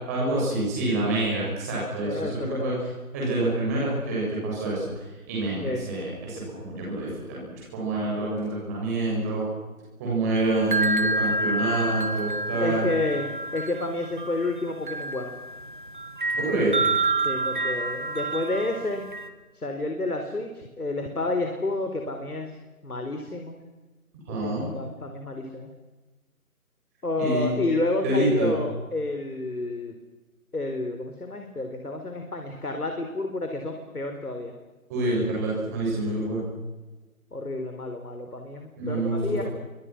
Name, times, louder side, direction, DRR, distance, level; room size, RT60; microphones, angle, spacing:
voice 1, 0.1-2.7 3.1-9.5 10.0-12.8 16.3-16.7 24.3-24.7 27.2-27.6 28.0-28.5 34.9-36.4 38.8-39.4, right 2 dB, 10° right, -5 dB, 7.4 m, -27 dB
voice 2, 2.0-2.7 5.6-5.8 8.1-8.3 12.6-15.3 17.2-19.0 19.5-22.5 22.8-23.6 24.4-25.7 27.0-30.0 30.5-34.5 37.3-39.4, left 2 dB, 85° left, 4 dB, 4.4 m, -30 dB
sound 1, 10.3-19.3, right 2 dB, 35° right, 1.9 m, -29 dB
29.0 x 25.0 x 6.3 m, 1.2 s
figure-of-eight pair, 170°, 44 cm